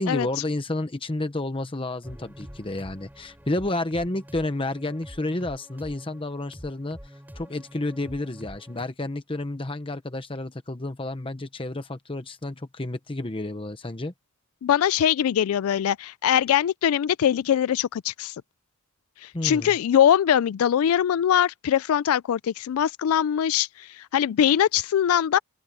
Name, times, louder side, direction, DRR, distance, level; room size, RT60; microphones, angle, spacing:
voice 1, 0.0-14.1 19.3-19.7, left 2 dB, 25° left, 0.9 m, -30 dB
sound 1, 2.0-8.8, equal, 10° right, 7.6 m, -46 dB
voice 2, 14.6-18.3 19.2-25.4, left 9 dB, 80° left, 0.3 m, -22 dB
open air
head